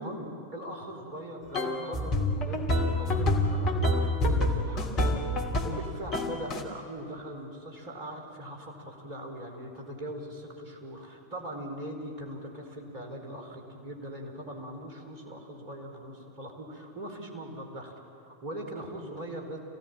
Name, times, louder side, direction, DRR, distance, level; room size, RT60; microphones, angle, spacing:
voice 1, 0.0-5.1 5.6-17.9 18.2-19.6, right 1 dB, 45° right, 2 dB, 4.7 m, -40 dB
sound 1, 1.5-5.8 6.1-6.6, left 1 dB, 35° left, 2.9 m, -27 dB
27.0 x 17.5 x 8.9 m, 2.7 s
figure-of-eight pair, 90°, 0 cm